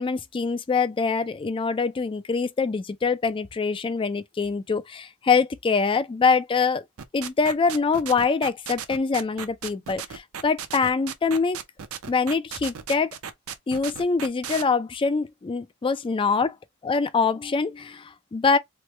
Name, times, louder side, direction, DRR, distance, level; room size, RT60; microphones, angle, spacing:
voice 1, 0.0-6.8 7.1-11.6 12.1-13.1 13.7-16.5 16.8-18.0 18.3-18.6, left 4 dB, 25° left, 0.3 m, -24 dB
sound 1, 7.0-14.6, right 8 dB, 70° right, 0.6 m, -35 dB
3.1 x 2.2 x 3.1 m
head